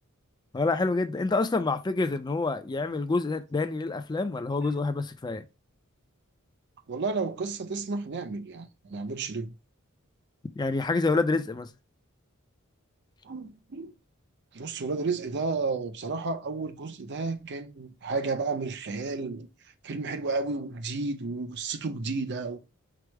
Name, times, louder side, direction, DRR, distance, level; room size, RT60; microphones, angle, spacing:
voice 1, 0.5-5.4 10.6-11.7, left 3 dB, 20° left, 0.4 m, -27 dB
voice 2, 6.9-9.6 13.2-13.9 14.5-19.5 19.8-22.6, right 3 dB, 55° right, 0.6 m, -32 dB
4.7 x 2.0 x 4.5 m
head